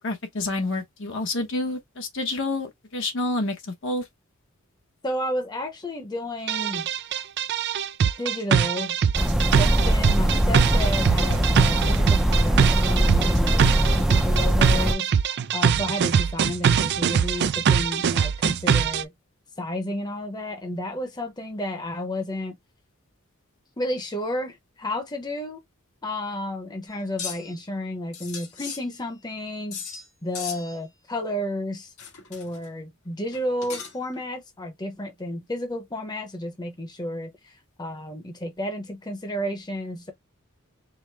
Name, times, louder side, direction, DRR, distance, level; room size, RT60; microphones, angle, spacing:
voice 1, 0.0-3.5 3.8-4.0, left 2 dB, 60° left, 1.0 m, -28 dB
voice 2, 5.0-6.9 8.2-9.0 9.6-15.1 15.5-19.1 19.6-22.6 23.8-25.6 26.0-29.8 30.2-31.9 32.3-40.1, left 1 dB, 20° left, 0.9 m, -32 dB
sound 1, 6.5-19.0, right 7 dB, 50° right, 0.4 m, -22 dB
sound 2, 9.1-14.9, right 1 dB, 5° right, 0.5 m, -21 dB
sound 3, 26.9-27.6 28.1-29.3 29.7-30.1 30.3-30.9 32.0-32.7 33.3-34.1, left 6 dB, 85° left, 1.5 m, -37 dB
4.7 x 2.2 x 3.4 m
head